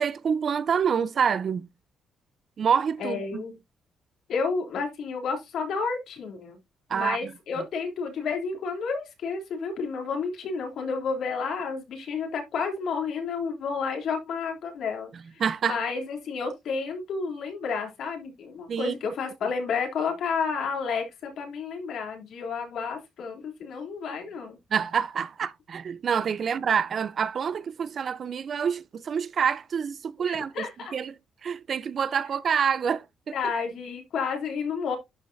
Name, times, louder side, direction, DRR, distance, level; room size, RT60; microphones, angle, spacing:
voice 1, 0.0-1.7 2.6-3.4 6.9-7.3 15.4-15.8 18.7-18.9 24.7-30.7 30.9-31.1 31.4-33.3, right 7 dB, 50° right, 0.7 m, -27 dB
voice 2, 3.0-3.6 4.3-6.6 6.9-24.6 30.2-30.9 33.3-35.0, left 5 dB, 70° left, 3.3 m, -31 dB
11.5 x 5.5 x 2.7 m
cardioid pair, 90°, 0 cm